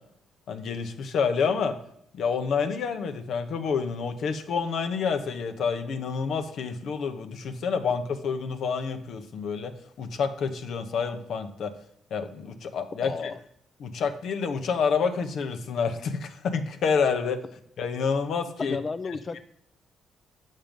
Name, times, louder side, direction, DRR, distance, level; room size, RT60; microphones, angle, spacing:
voice 1, 0.5-1.7 2.1-9.7 10.0-11.7 12.1-13.3 13.8-17.4 17.8-18.8 19.3-19.4, left 5 dB, 70° left, 8 dB, 1.0 m, -28 dB
voice 2, 13.0-13.4 18.6-19.4, left 4 dB, 35° left, 14 dB, 0.6 m, -32 dB
7.5 x 6.6 x 5.2 m, 0.70 s
cardioid pair, 90°, 0 cm